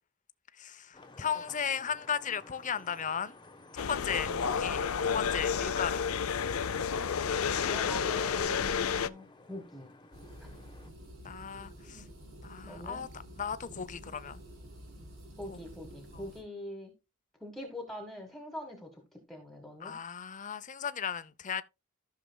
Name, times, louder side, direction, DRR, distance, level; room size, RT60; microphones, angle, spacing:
voice 1, 0.6-3.4 3.7-4.8 5.1-6.0 7.6-7.8 11.2-12.0 12.4-13.1 13.4-14.4 15.5-15.6 16.1-16.2 19.8-21.6, left 7 dB, 35° left, 0.6 m, -36 dB
Vehicle horn car horn honking / Traffic noise roadway noise, 0.9-10.9, left 2 dB, 20° left, 1.1 m, -55 dB
sound 1, 3.8-9.1, left 6 dB, 90° left, 0.6 m, -31 dB
voice 2, 4.2-4.6 7.7-9.9 10.4-10.5 11.9-12.0 12.6-13.1 15.4-16.9 17.4-20.0, left 1 dB, ahead, 1.5 m, -44 dB
sound 2, 10.1-16.4, equal, 75° right, 4.1 m, -49 dB
14.5 x 6.7 x 2.3 m
head